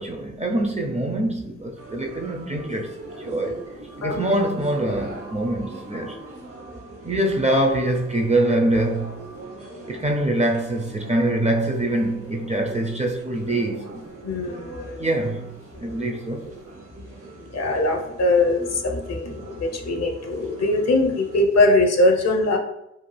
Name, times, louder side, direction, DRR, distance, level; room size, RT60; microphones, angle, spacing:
voice 1, 0.0-3.6 4.0-6.2 7.0-9.2 9.9-14.0 15.0-15.5 15.8-16.5, right 1 dB, 20° right, 0.5 m, -24 dB
sound 1, 1.8-21.4, right 2 dB, 50° right, 0.9 m, -41 dB
voice 2, 4.0-4.3 14.2-15.1 17.5-22.6, left 2 dB, 55° left, 0.6 m, -21 dB
2.6 x 2.3 x 3.2 m
supercardioid pair, 40°, 30 cm